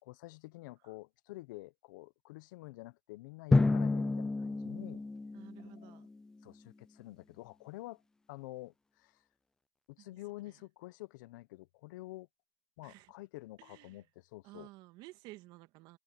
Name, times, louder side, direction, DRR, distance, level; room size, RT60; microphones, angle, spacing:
voice 1, 0.0-5.0 5.6-6.0 6.4-8.0 8.3-9.2 9.9-12.3 12.8-14.7, left 19 dB, 45° left, 1.1 m, -49 dB
Drum, 3.5-6.2, left 3 dB, 5° left, 0.4 m, -30 dB
voice 2, 5.3-6.1 10.0-10.2 10.4-10.6 12.8-13.1 13.6-14.1 14.4-16.0, right 19 dB, 35° right, 2.0 m, -54 dB
hypercardioid pair, 140°, 14 cm